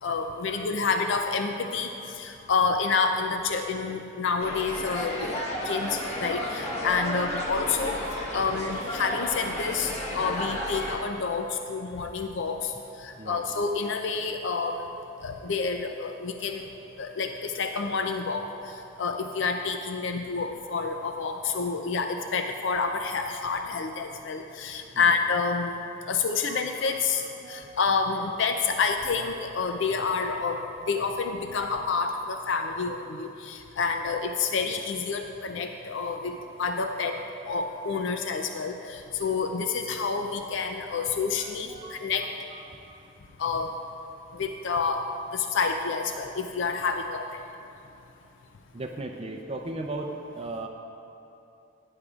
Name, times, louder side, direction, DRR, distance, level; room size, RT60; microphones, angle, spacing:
voice 1, 0.0-5.4 5.6-8.0 8.3-12.7 13.0-14.8 15.2-16.7 17.0-18.7 19.0-25.8 26.1-37.2 37.5-42.3 43.4-43.7 44.3-47.4, left 4 dB, 65° left, 5 dB, 0.5 m, -28 dB
voice 2, 1.6-2.1 2.4-2.5 13.2-13.4 24.9-25.1 26.0-26.1 26.5-27.0 27.4-27.8 41.4-43.0 48.7-50.7, right 2 dB, 30° right, 3 dB, 0.5 m, -39 dB
sound 1, 4.4-11.0, left 1 dB, 35° left, 1.2 m, -33 dB
16.5 x 9.8 x 2.4 m, 2.8 s
head